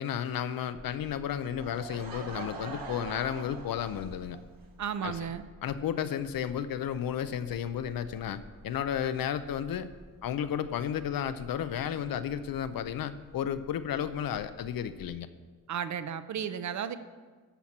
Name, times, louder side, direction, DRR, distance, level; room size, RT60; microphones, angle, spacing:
voice 1, 0.0-4.4 5.0-5.2 5.6-9.9 10.2-15.3, left 9 dB, 80° left, 12 dB, 0.7 m, -33 dB
sound 1, 0.7-15.1, right 2 dB, 20° right, 0.9 m, -53 dB
Laughter / Crowd, 1.6-4.4, right 4 dB, 75° right, 1.6 m, -42 dB
voice 2, 4.8-5.4 15.7-17.0, right 8 dB, 55° right, 12 dB, 0.6 m, -34 dB
12.5 x 4.4 x 7.2 m, 1.4 s
wide cardioid pair, 130°, 35 cm